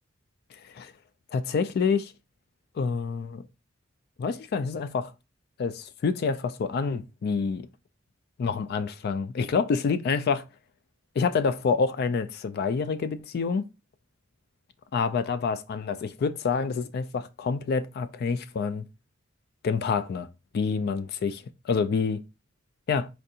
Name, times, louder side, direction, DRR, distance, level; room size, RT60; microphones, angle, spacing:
voice 1, 1.3-2.1 2.8-3.4 4.2-5.1 5.6-7.7 8.4-10.4 11.2-13.7 14.9-18.8 19.6-20.3 20.5-22.2 22.9-23.1, left 5 dB, 50° left, 0.3 m, -27 dB
4.4 x 2.5 x 2.7 m
head